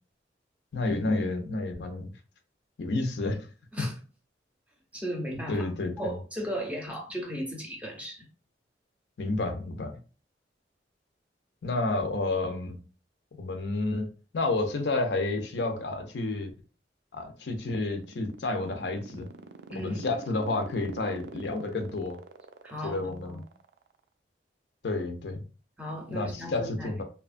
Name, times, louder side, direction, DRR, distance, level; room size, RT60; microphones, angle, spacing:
voice 1, 0.7-2.1 2.8-3.5 3.8-3.9 5.5-6.2 9.2-10.0 11.6-12.8 13.4-16.5 17.1-19.3 19.8-22.2 22.8-23.4 24.8-25.4 26.1-27.0, left 2 dB, 70° left, 0.5 m, -30 dB
voice 2, 4.9-8.3 19.7-20.1 22.6-23.4 25.8-26.9, equal, 5° right, 0.6 m, -36 dB
sound 1, 17.3-24.0, right 4 dB, 70° right, 0.3 m, -45 dB
2.8 x 2.2 x 2.5 m
head